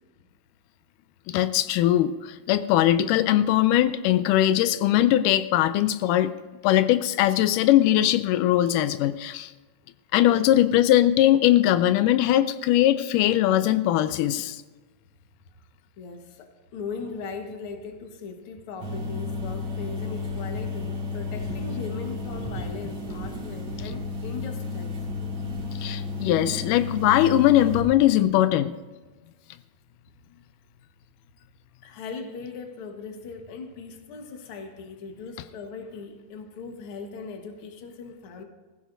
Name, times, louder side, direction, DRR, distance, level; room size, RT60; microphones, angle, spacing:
voice 1, 1.3-6.3 6.6-9.5 10.1-14.6 25.8-28.7, left 13 dB, 85° left, 12 dB, 2.1 m, -20 dB
voice 2, 16.0-25.0 31.8-38.4, left 4 dB, 55° left, 4 dB, 1.9 m, -39 dB
sound 1, 18.8-27.8, left 3 dB, 50° right, 3.1 m, -32 dB
20.0 x 15.0 x 2.6 m, 1.3 s
omnidirectional pair, 3.6 m